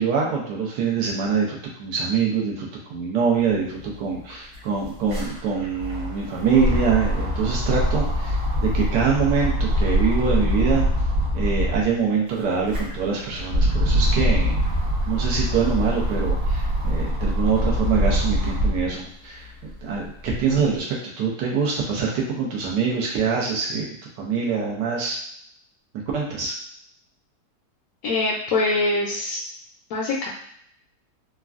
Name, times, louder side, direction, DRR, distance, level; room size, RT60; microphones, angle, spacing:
voice 1, 0.0-10.9 11.3-14.5 15.0-19.5 19.8-23.9 24.2-25.2 26.1-26.5, right 5 dB, 75° right, -2 dB, 1.3 m, -24 dB
sound 1, 3.8-3.9 4.1-11.9 12.4-18.9 19.4-20.6, equal, 50° right, 1.2 m, -23 dB
voice 2, 28.0-29.4 29.9-30.3, left 2 dB, 70° left, -4 dB, 0.9 m, -23 dB
3.6 x 2.2 x 2.4 m, 0.69 s
omnidirectional pair, 1.9 m